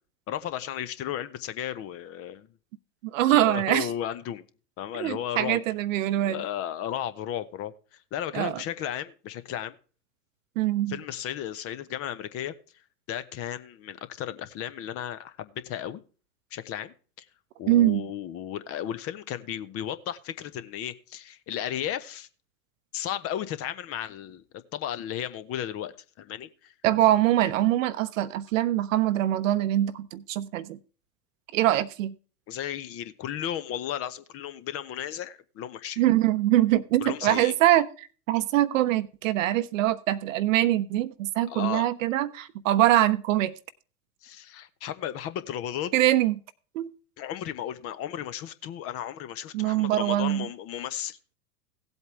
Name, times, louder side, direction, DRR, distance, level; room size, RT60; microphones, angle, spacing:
voice 1, 0.3-2.5 3.3-4.4 4.8-5.6 6.2-9.7 10.9-12.5 13.1-16.0 16.5-17.3 17.6-22.3 22.9-26.7 32.5-36.0 37.0-37.5 41.5-41.9 44.2-45.9 47.2-51.3, left 10 dB, 30° left, 0.8 m, -34 dB
voice 2, 3.1-3.9 5.0-6.4 8.3-8.6 10.6-11.0 17.7-18.1 26.8-30.8 31.5-32.1 36.0-43.5 45.9-46.3 46.7-46.9 49.5-50.5, right 14 dB, 55° right, 0.8 m, -23 dB
16.5 x 8.1 x 3.3 m
figure-of-eight pair, 95°, 48 cm